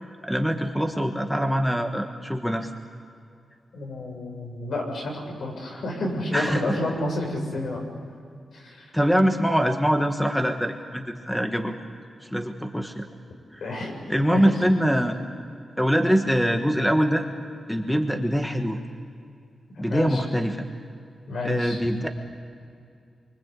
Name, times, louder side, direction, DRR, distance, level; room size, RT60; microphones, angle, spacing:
voice 1, 0.2-2.7 6.3-6.6 8.9-11.8 12.2-13.1 13.5-13.6 14.1-15.2 15.8-17.3 17.7-18.8 19.8-20.6 21.4-22.1, equal, ahead, 4 dB, 1.4 m, -23 dB
voice 2, 3.7-7.8 8.5-8.9 13.6-13.9 14.3-14.6 19.7-20.2 21.3-21.8, left 1 dB, 70° left, 1 dB, 7.0 m, -30 dB
28.0 x 24.5 x 8.4 m, 2.4 s
wide cardioid pair, 170°, 0 cm